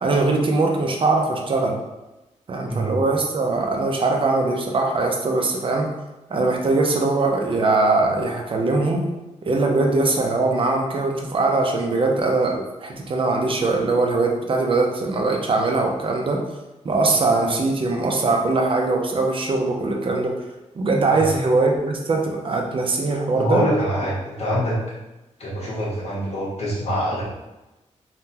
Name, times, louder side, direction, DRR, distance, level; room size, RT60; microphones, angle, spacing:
voice 1, 0.0-1.8 2.5-5.9 6.3-9.1 9.4-16.4 16.8-20.4 20.8-23.7, right 3 dB, 45° right, 2 dB, 0.5 m, -21 dB
voice 2, 23.3-24.8 25.4-27.2, equal, 55° left, -6 dB, 1.2 m, -24 dB
3.7 x 2.2 x 2.7 m, 1.0 s
wide cardioid pair, 120°, 13 cm